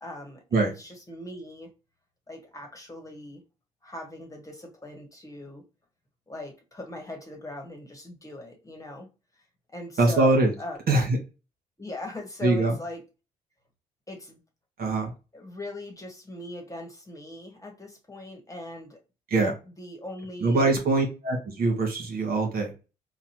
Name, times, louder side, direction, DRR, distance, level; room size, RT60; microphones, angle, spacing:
voice 1, 0.0-1.7 2.3-3.4 3.8-5.6 6.3-9.1 9.7-10.8 11.8-13.0 14.1-14.4 15.3-19.0 19.8-20.7, left 1 dB, 15° left, 2 dB, 1.4 m, -40 dB
voice 2, 10.0-10.5 10.9-11.2 12.4-12.7 14.8-15.1 19.3-19.5 20.4-22.7, right 2 dB, 50° right, 2 dB, 1.4 m, -23 dB
4.0 x 2.2 x 2.9 m, 0.30 s
hypercardioid pair, 50°, 20 cm